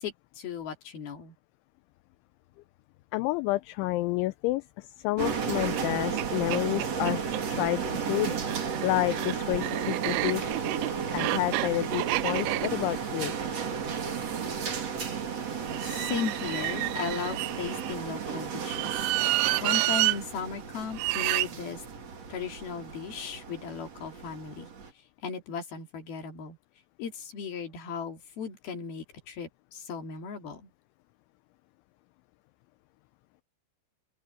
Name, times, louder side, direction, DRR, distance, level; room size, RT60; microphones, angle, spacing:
voice 1, 0.0-1.3 15.8-19.1 19.6-21.8 22.3-24.7 25.2-26.6 27.0-30.7, left 6 dB, 55° left, 4.2 m, -36 dB
voice 2, 3.1-10.5 11.1-13.3, left 19 dB, 80° left, 2.9 m, -30 dB
sound 1, 5.2-24.9, right 6 dB, 40° right, 2.7 m, -34 dB
sound 2, 5.7-5.8 6.2-6.3 6.5-7.4 8.3-14.5 15.7-18.0 18.6-20.2 21.0-21.5, right 20 dB, 80° right, 2.8 m, -30 dB
open air
omnidirectional pair, 5.8 m